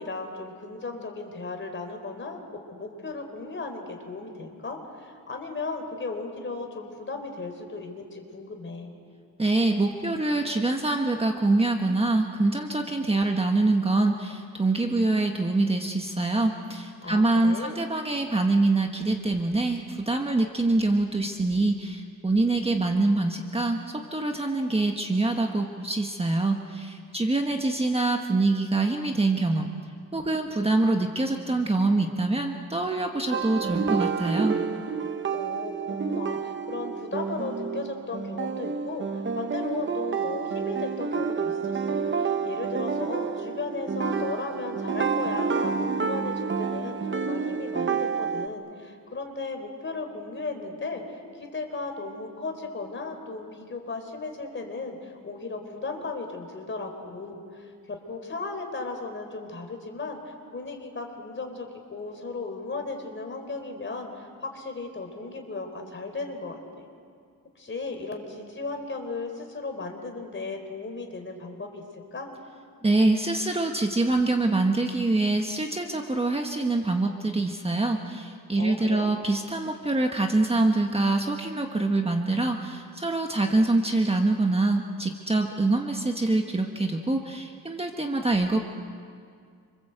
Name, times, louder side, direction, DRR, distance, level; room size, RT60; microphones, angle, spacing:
voice 1, 0.0-2.4 2.7-8.9 17.0-17.8 35.3-66.9 67.6-71.8 72.1-72.3 78.6-79.1, left 3 dB, 35° left, 4 dB, 4.1 m, -36 dB
voice 2, 9.4-29.7 30.1-34.6 72.8-88.6, right 2 dB, 15° right, 3 dB, 1.5 m, -25 dB
sound 1, 33.3-48.5, right 5 dB, 35° right, 1.0 m, -29 dB
28.0 x 26.0 x 8.1 m, 2.2 s
wide cardioid pair, 130°, 36 cm